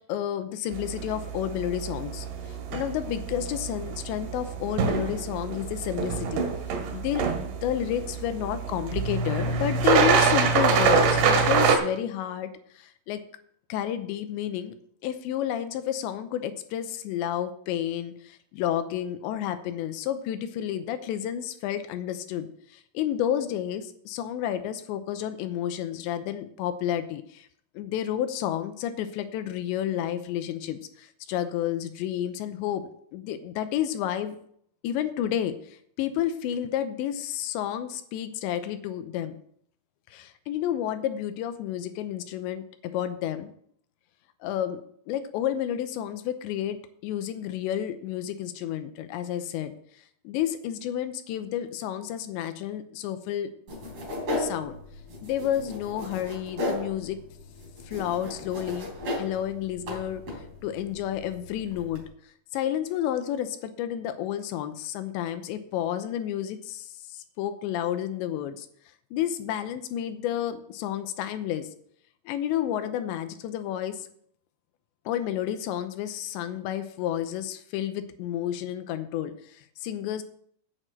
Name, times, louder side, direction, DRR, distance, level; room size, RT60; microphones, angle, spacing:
voice 1, 0.1-6.4 6.9-13.2 13.7-14.7 15.0-27.5 27.7-34.4 34.8-39.4 40.1-43.5 44.4-44.8 45.1-46.8 47.0-49.7 50.2-53.5 54.3-54.8 55.2-57.2 57.9-58.9 59.2-62.0 62.5-68.7 69.1-71.7 72.3-74.1 75.1-80.2, left 10 dB, 80° left, 10 dB, 2.9 m, -31 dB
sound 1, 0.7-11.8, right 5 dB, 85° right, 3.9 m, -25 dB
sound 2, 53.7-62.1, left 1 dB, 35° right, 4.1 m, -36 dB
9.0 x 6.4 x 7.8 m, 0.64 s
omnidirectional pair, 5.3 m